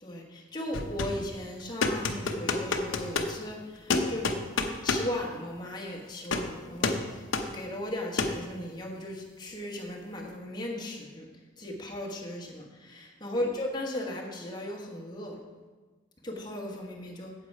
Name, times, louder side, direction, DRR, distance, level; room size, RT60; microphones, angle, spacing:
voice 1, 0.0-4.3 4.8-7.0 7.4-11.3 11.6-15.4 16.2-17.3, left 1 dB, 20° left, -1 dB, 1.4 m, -36 dB
sound 1, 0.7-1.2 1.8-3.3 3.9-5.1 6.2-6.5 6.8-7.1 7.3-7.5 8.2-8.4, left 3 dB, 80° left, 0.8 m, -28 dB
8.1 x 7.9 x 4.8 m, 1.3 s
head